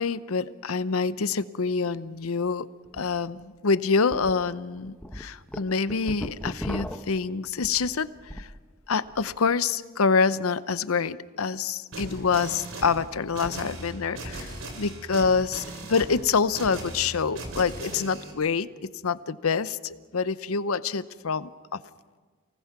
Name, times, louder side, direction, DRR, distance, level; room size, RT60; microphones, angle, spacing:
voice 1, 0.0-2.7 2.9-8.1 8.3-8.5 8.9-18.7 19.0-21.8, left 5 dB, 80° left, 15 dB, 0.7 m, -26 dB
sound 1, 2.9-3.0 3.4-3.5 4.1-4.3 4.8-8.6 8.9-9.4, equal, 5° left, 0.8 m, -37 dB
sound 2, 11.9-18.3, right 1 dB, 65° right, 4.1 m, -38 dB
29.0 x 19.0 x 6.0 m, 1.4 s
head